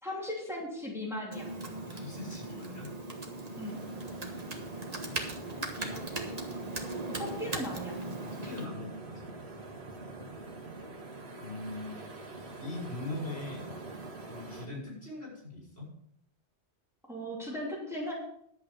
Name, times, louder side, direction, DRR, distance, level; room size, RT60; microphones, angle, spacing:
voice 1, 0.0-1.6 3.5-3.8 7.2-8.0 17.1-18.1, left 1 dB, ahead, -4 dB, 2.9 m, -37 dB
Computer keyboard, 1.3-8.7, right 2 dB, 35° right, 1.4 m, -39 dB
voice 2, 1.9-2.9 5.6-6.0 8.2-9.3 11.4-12.0 12.6-13.7 14.3-15.9, left 2 dB, 70° left, -4 dB, 5.9 m, -41 dB
sound 1, 3.5-14.6, right 2 dB, 70° right, 1.9 m, -45 dB
11.0 x 8.5 x 5.3 m, 0.71 s
omnidirectional pair, 1.1 m